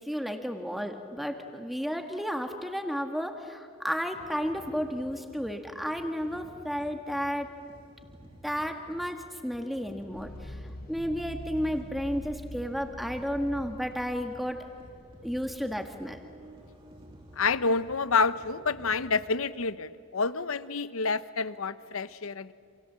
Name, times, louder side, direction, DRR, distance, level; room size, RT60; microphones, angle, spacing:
voice 1, 0.1-7.5 8.4-10.6 10.9-14.6 15.2-16.2, equal, ahead, 5 dB, 1.7 m, -32 dB
sound 1, 4.1-19.2, right 1 dB, 25° right, 3.1 m, -53 dB
sound 2, 10.1-17.5, left 1 dB, 45° left, 1.0 m, -45 dB
voice 2, 17.4-22.5, left 4 dB, 80° left, 14 dB, 0.9 m, -28 dB
29.0 x 27.5 x 7.5 m, 2.4 s
head